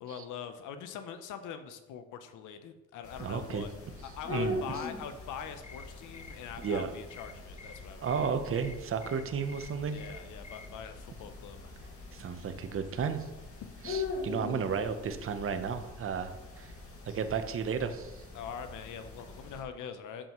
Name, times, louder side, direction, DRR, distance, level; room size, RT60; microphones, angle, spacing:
voice 1, 0.0-3.7 4.0-8.3 9.9-11.7 18.3-20.3, left 7 dB, 85° left, 9 dB, 0.7 m, -43 dB
sound 1, 3.0-19.6, left 3 dB, 50° left, 2.0 m, -43 dB
voice 2, 3.2-3.7 4.3-4.6 6.6-6.9 8.0-10.0 12.1-13.3 13.8-16.3 16.6-16.7 17.1-18.2, right 6 dB, 45° right, 8 dB, 0.8 m, -33 dB
sound 2, 5.6-10.7, left 5 dB, 25° left, 0.6 m, -52 dB
8.7 x 7.2 x 3.0 m, 1.1 s
cardioid pair, 90°, 30 cm